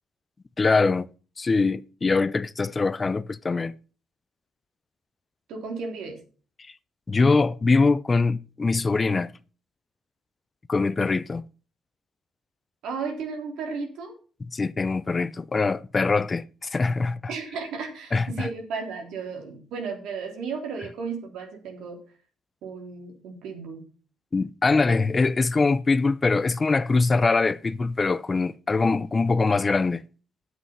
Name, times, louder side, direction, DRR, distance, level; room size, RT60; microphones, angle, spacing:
voice 1, 0.6-1.1 1.4-3.7 7.1-9.3 10.7-11.4 14.5-17.2 18.1-18.5 24.3-30.0, left 3 dB, 30° left, 0.6 m, -23 dB
voice 2, 5.5-6.2 11.0-11.1 12.8-14.1 17.3-22.0 22.6-23.8, right 5 dB, 85° right, 3.4 m, -34 dB
9.8 x 8.0 x 5.6 m
cardioid pair, 90°, 0 cm